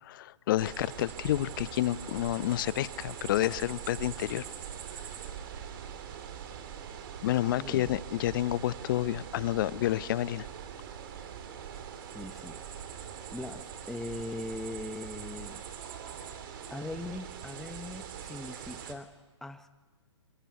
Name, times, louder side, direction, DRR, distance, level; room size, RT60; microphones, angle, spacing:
voice 1, 0.0-4.5 7.2-10.5, left 14 dB, 45° left, 19 dB, 0.7 m, -29 dB
sound 1, 0.6-18.9, right 8 dB, 45° right, 3.0 m, -43 dB
voice 2, 7.6-8.0 12.1-12.6 13.3-15.6 16.7-19.1 19.4-19.7, left 2 dB, ahead, 10 dB, 0.9 m, -40 dB
24.5 x 19.5 x 9.5 m, 1.3 s
hypercardioid pair, 135°, 16 cm